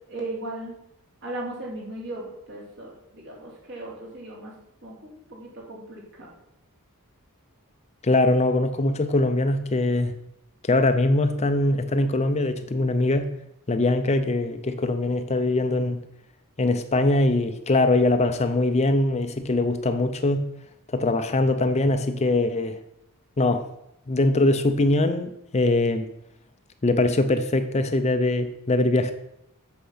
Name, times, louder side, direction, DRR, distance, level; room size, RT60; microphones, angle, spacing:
voice 1, 0.1-0.8 1.2-4.5 4.8-6.3, right 2 dB, 55° right, -2 dB, 3.2 m, -37 dB
voice 2, 8.0-10.1 10.7-13.3 13.7-16.0 16.6-20.4 20.9-22.8 23.4-23.7 24.1-26.1 26.8-29.1, left 2 dB, 30° left, 9 dB, 0.6 m, -22 dB
8.5 x 6.6 x 5.7 m, 0.81 s
head